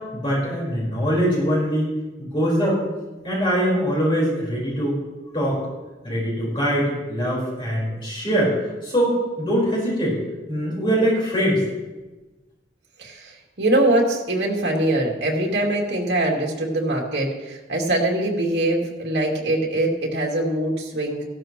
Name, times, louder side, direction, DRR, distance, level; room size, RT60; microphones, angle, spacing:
voice 1, 0.0-2.8 3.2-5.0 5.3-5.6 6.0-8.5 8.8-10.2 10.5-11.6, equal, 30° left, -6 dB, 4.7 m, -22 dB
voice 2, 13.0-21.2, right 1 dB, 70° right, -1 dB, 2.7 m, -23 dB
16.0 x 12.0 x 3.1 m, 1.2 s
head